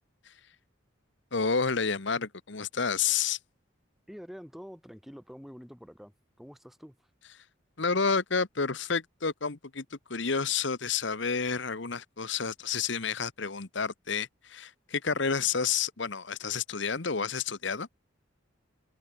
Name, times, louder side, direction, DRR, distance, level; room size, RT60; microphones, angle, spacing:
voice 1, 1.3-3.4 7.8-17.9, left 5 dB, 65° left, 1.2 m, -30 dB
voice 2, 4.1-7.1, equal, ahead, 1.3 m, -47 dB
head